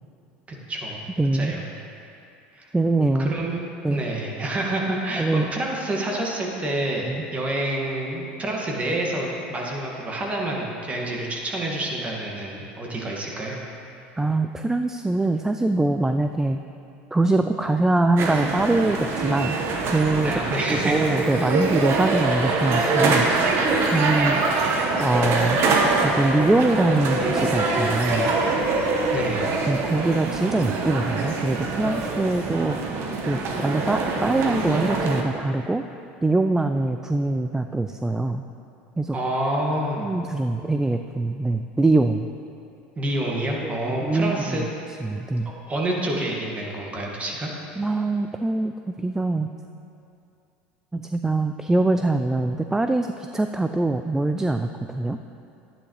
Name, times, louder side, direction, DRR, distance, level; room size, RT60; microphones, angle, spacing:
voice 1, 0.5-1.0 1.3-1.6 2.5-2.7 3.2-3.6 3.9-13.6 20.2-21.1 21.3-21.5 29.1-29.5 39.1-40.1 43.0-44.7 45.5-47.5, right 1 dB, 25° right, -2 dB, 2.1 m, -28 dB
voice 2, 1.2-1.6 2.7-3.4 3.8-4.0 5.2-5.5 7.1-7.2 14.2-16.6 17.1-19.6 19.9-20.3 20.7-23.3 23.9-24.4 25.0-25.6 26.0-28.3 29.7-32.8 33.3-35.8 36.2-38.4 39.0-39.2 40.0-42.3 43.6-44.6 45.0-45.5 47.8-49.5 50.9-55.2, right 2 dB, 10° right, 7 dB, 0.3 m, -23 dB
sound 1, 18.2-35.2, right 3 dB, 50° right, 1.2 m, -24 dB
11.5 x 9.9 x 3.3 m, 2.6 s
hypercardioid pair, 90°, 5 cm